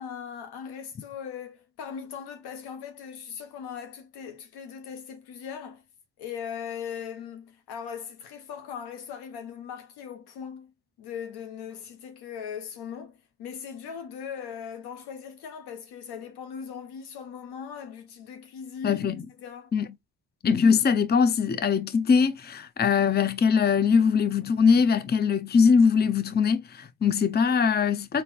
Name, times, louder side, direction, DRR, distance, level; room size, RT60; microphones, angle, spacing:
voice 1, 0.0-5.8 6.2-19.0 19.4-19.7, left 7 dB, 80° left, 1.3 m, -39 dB
voice 2, 18.8-19.2 19.7-19.9 20.4-28.2, left 6 dB, 25° left, 0.6 m, -22 dB
3.9 x 2.7 x 4.2 m
supercardioid pair, 65°, 39 cm